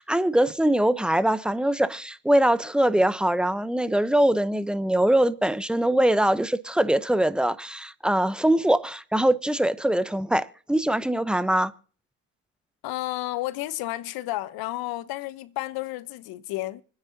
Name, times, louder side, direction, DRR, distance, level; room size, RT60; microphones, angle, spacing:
voice 1, 0.0-11.7, right 1 dB, ahead, 0.8 m, -22 dB
voice 2, 12.8-16.8, left 17 dB, 70° left, 1.0 m, -31 dB
25.5 x 9.8 x 2.8 m
hypercardioid pair, 65°, 38 cm